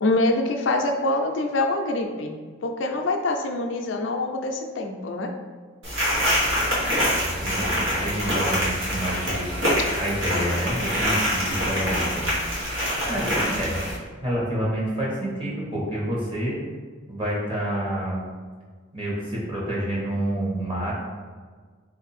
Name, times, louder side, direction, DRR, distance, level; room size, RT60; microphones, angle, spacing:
voice 1, 0.0-2.3 2.6-5.3, left 2 dB, 70° left, 3 dB, 0.4 m, -25 dB
sound 1, 5.8-13.9, equal, 80° right, 1.4 m, -25 dB
voice 2, 6.6-9.5 9.9-12.4 13.1-13.8 14.2-16.6 17.1-18.2 18.9-20.9, right 1 dB, 25° right, -5 dB, 1.0 m, -28 dB
3.8 x 2.6 x 4.1 m, 1.5 s
head